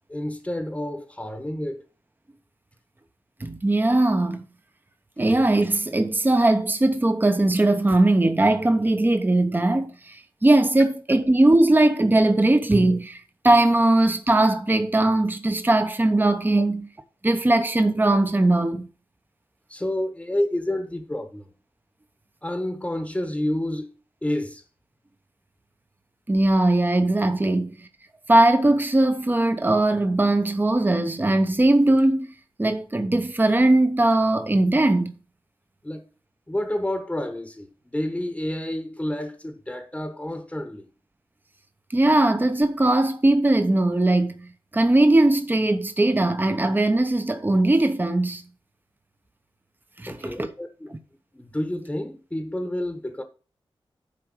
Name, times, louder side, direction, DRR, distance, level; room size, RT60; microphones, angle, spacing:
voice 1, 0.1-1.8 16.5-16.6 19.7-21.5 22.4-23.9 24.2-24.6 35.8-36.1 36.5-40.9 50.1-51.0 51.3-53.2, left 1 dB, 15° left, 1.2 m, -29 dB
voice 2, 3.4-4.4 5.2-16.8 17.2-18.9 26.3-27.7 28.3-32.3 32.6-35.2 41.9-48.4 50.0-50.5, right 2 dB, 20° right, 1.0 m, -20 dB
8.5 x 4.6 x 6.2 m
wide cardioid pair, 85°, 9 cm